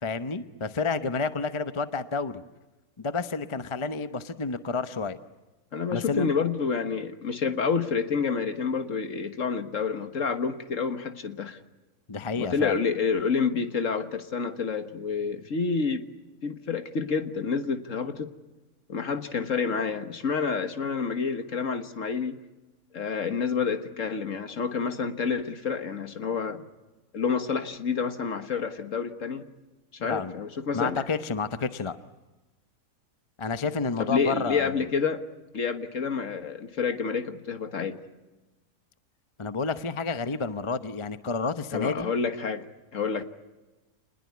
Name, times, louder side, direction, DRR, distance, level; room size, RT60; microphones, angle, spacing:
voice 1, 0.0-2.4 3.0-5.2 5.9-6.3 12.1-12.8 30.0-30.3 30.7-32.0 33.4-34.8 39.4-42.1, left 4 dB, 25° left, 10 dB, 0.8 m, -30 dB
voice 2, 5.7-11.6 12.4-16.1 16.4-18.3 18.9-22.4 22.9-26.6 27.1-29.5 29.9-31.0 34.0-35.2 35.5-38.0 41.7-42.7 42.9-43.2, left 5 dB, 60° left, 8 dB, 1.8 m, -28 dB
27.5 x 20.5 x 9.5 m, 1.2 s
omnidirectional pair, 1.6 m